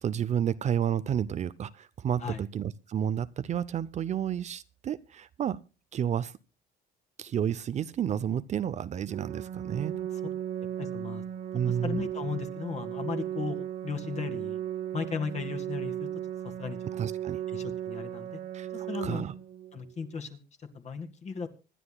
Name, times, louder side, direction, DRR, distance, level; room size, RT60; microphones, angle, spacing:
voice 1, 0.0-5.6 5.9-6.3 7.2-10.1 11.5-12.0 17.0-17.4 18.5-19.3, right 9 dB, 45° right, 0.6 m, -31 dB
Organ, 9.1-20.1, right 10 dB, 65° right, 1.2 m, -36 dB
voice 2, 10.8-11.2 11.6-14.6 14.9-16.1 16.4-17.1 17.5-18.4 18.7-19.3 19.7-21.5, left 5 dB, 40° left, 2.1 m, -36 dB
25.5 x 11.0 x 2.3 m
cardioid pair, 110°, 17 cm